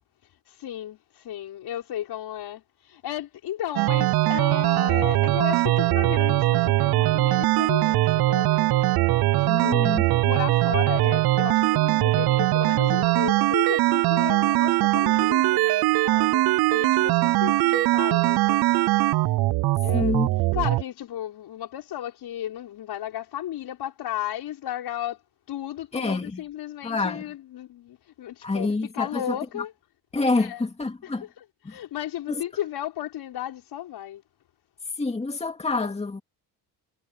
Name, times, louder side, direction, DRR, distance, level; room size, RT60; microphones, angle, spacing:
voice 1, 0.5-8.8 9.4-18.6 19.8-20.2 20.5-25.2 25.5-29.7 30.3-30.6 31.0-34.2, left 12 dB, 65° left, 5.7 m, -34 dB
sound 1, 3.8-20.8, right 18 dB, 60° right, 0.6 m, -21 dB
voice 2, 9.4-10.2 19.9-20.3 25.9-26.4 26.8-27.2 28.4-29.4 30.1-31.2 31.6-31.8 32.3-32.4 35.0-36.2, left 3 dB, 15° left, 2.3 m, -27 dB
cardioid pair, 120°, 42 cm